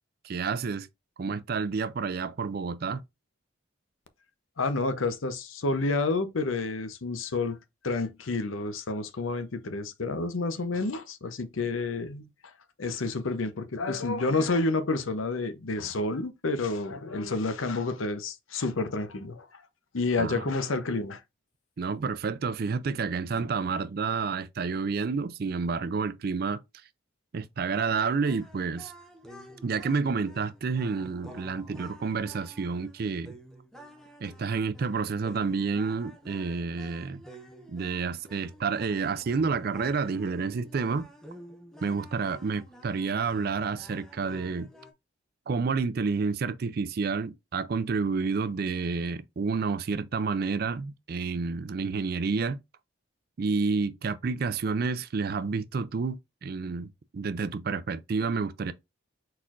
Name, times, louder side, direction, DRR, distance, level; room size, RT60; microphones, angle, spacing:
voice 1, 0.2-0.9 1.2-3.0 20.2-20.4 21.8-26.6 27.3-28.9 29.6-33.4 34.2-37.2 37.7-41.1 41.8-44.7 45.5-52.6 53.4-58.7, right 4 dB, 50° right, 0.4 m, -29 dB
voice 2, 4.6-12.5 12.8-19.6 19.9-21.2, left 3 dB, 80° left, 0.7 m, -29 dB
sound 1, 27.7-44.9, right 1 dB, ahead, 0.6 m, -50 dB
4.3 x 4.2 x 2.4 m
head